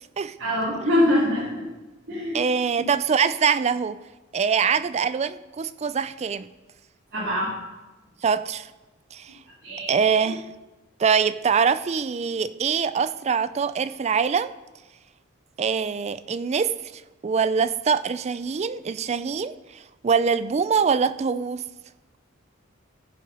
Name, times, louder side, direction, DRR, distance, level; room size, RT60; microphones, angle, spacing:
voice 1, 0.4-1.7 2.1-2.5 2.8-2.9 7.1-7.5 9.6-9.9, left 1 dB, 60° right, -9 dB, 2.6 m, -24 dB
voice 2, 2.3-4.0 4.3-6.5 8.2-8.7 9.1-9.3 9.9-10.5 11.0-14.5 15.6-16.7 17.2-21.6, right 6 dB, 35° right, 14 dB, 0.3 m, -23 dB
15.0 x 5.7 x 5.4 m, 1.1 s
head